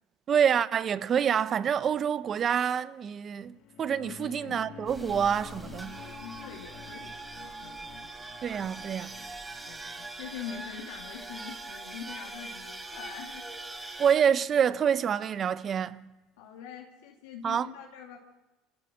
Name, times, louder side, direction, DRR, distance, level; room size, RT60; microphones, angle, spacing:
voice 1, 0.3-6.0 8.4-9.2 14.0-16.0 17.4-17.7, right 8 dB, 45° right, 1.1 m, -27 dB
sound 1, 3.5-10.1, left 10 dB, 60° left, 1.9 m, -49 dB
voice 2, 4.0-4.8 6.2-8.2 8.8-8.9 9.7-13.8 16.4-18.2, left 8 dB, 85° left, 2.7 m, -44 dB
sound 2, 4.9-14.2, right 2 dB, 15° right, 4.9 m, -42 dB
27.0 x 16.5 x 7.7 m
supercardioid pair, 85°, 0 cm